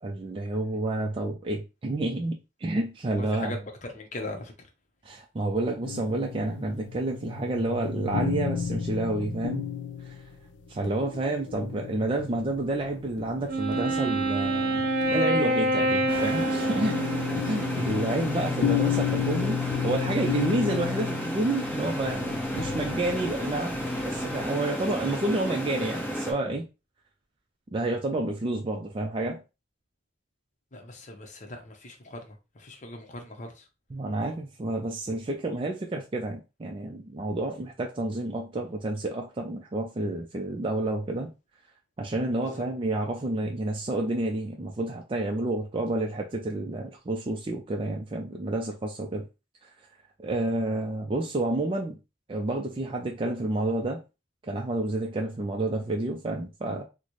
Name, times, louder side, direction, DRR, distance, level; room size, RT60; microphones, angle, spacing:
voice 1, 0.0-3.5 5.0-9.7 10.0-10.2 10.7-17.0 17.3-26.7 27.7-29.4 33.9-41.3 42.0-49.3 49.6-49.7 50.2-52.0 52.3-54.0 54.4-56.8, right 2 dB, 30° right, 0.4 m, -29 dB
voice 2, 3.1-4.5 30.7-33.7 42.4-42.7, left 1 dB, 40° left, 0.8 m, -40 dB
sound 1, 5.8-24.5, left 8 dB, 75° left, 0.4 m, -33 dB
Wind instrument woodwind instrument, 13.5-18.0, right 1 dB, 50° right, 0.7 m, -27 dB
sound 2, 16.1-26.3, equal, 10° left, 0.8 m, -33 dB
4.0 x 2.1 x 3.0 m
head